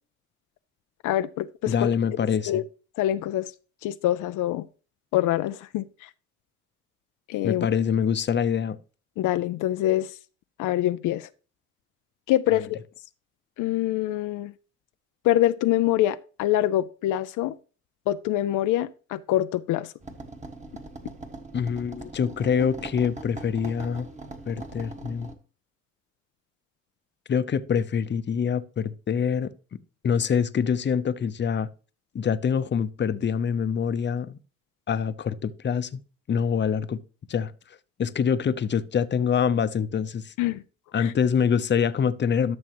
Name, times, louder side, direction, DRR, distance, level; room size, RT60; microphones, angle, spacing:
voice 1, 1.0-1.7 2.5-2.6 3.0-3.5 3.8-4.7 5.1-6.1 7.3-7.7 9.2-10.1 10.6-11.3 12.3-12.8 13.6-14.5 15.2-17.6 18.1-19.9 40.4-40.6 41.0-41.1, left 13 dB, 85° left, 0.5 m, -25 dB
voice 2, 1.7-2.6 7.4-8.8 12.5-12.6 21.5-24.1 24.5-25.3 27.3-29.5 30.0-31.7 32.1-34.4 34.9-36.0 36.3-37.0 37.3-37.5 38.0-40.3 40.9-42.6, left 7 dB, 35° left, 0.7 m, -25 dB
sound 1, 20.0-25.3, right 2 dB, 25° right, 1.4 m, -41 dB
12.5 x 6.3 x 3.0 m
cardioid pair, 90°, 30 cm